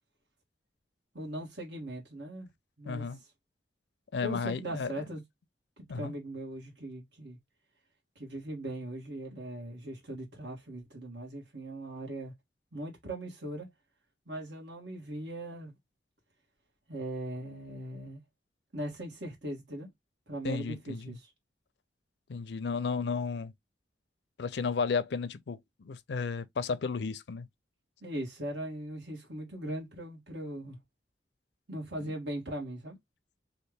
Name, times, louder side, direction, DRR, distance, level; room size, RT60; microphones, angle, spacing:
voice 1, 1.1-2.5 2.8-3.1 4.2-5.2 5.8-7.4 8.1-12.3 12.7-13.7 14.3-15.7 16.9-18.2 18.7-19.9 20.3-21.3 28.0-30.8 31.7-33.0, right 1 dB, 80° right, 1.6 m, -39 dB
voice 2, 2.9-3.2 4.1-4.9 5.9-6.1 20.4-21.2 22.3-23.5 24.4-27.5 32.0-32.1, left 5 dB, 70° left, 0.4 m, -33 dB
3.2 x 2.5 x 3.3 m
head